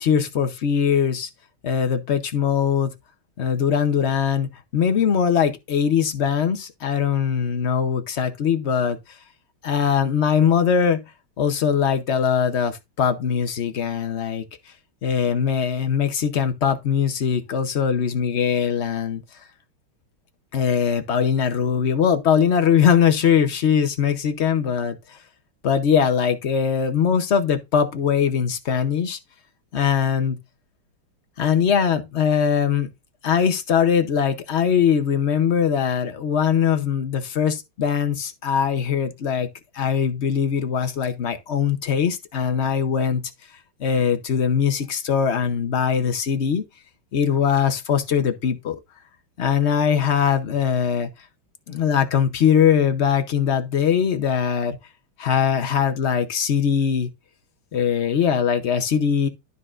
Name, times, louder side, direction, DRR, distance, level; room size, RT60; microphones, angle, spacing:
voice 1, 0.0-1.3 1.6-2.9 3.4-9.0 9.6-11.0 11.4-14.4 15.0-19.2 20.5-25.2 25.6-29.2 29.7-30.4 31.4-32.9 33.2-39.5 39.7-43.2 43.8-46.6 47.1-48.8 49.4-51.1 51.7-54.8 55.2-57.1 57.7-59.3, left 7 dB, 65° left, 0.6 m, -21 dB
12.0 x 5.3 x 2.4 m
omnidirectional pair, 2.2 m